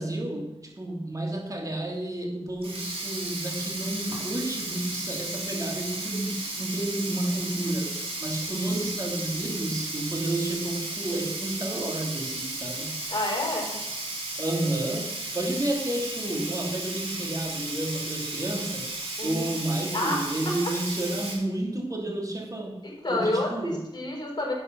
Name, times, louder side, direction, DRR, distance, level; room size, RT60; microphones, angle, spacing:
voice 1, 0.0-13.0 14.4-18.9 19.2-22.8 23.1-23.8, right 1 dB, 30° right, 2 dB, 2.5 m, -31 dB
Sink (filling or washing), 2.5-21.3, right 2 dB, 60° right, 3.2 m, -34 dB
voice 2, 13.1-13.8 19.2-19.5 19.9-20.7 22.8-24.5, left 1 dB, 40° left, -1 dB, 4.1 m, -29 dB
11.0 x 8.2 x 6.0 m, 0.95 s
wide cardioid pair, 75°, 11 cm